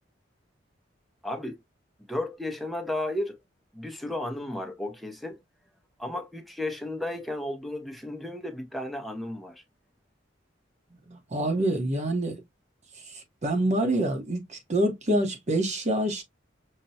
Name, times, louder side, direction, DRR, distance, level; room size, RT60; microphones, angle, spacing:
voice 1, 1.2-1.6 2.1-3.4 3.7-5.4 6.0-9.6, left 1 dB, ahead, 0.6 m, -33 dB
voice 2, 11.1-12.4 13.4-16.2, right 1 dB, 40° right, 0.9 m, -26 dB
5.6 x 2.2 x 2.7 m
head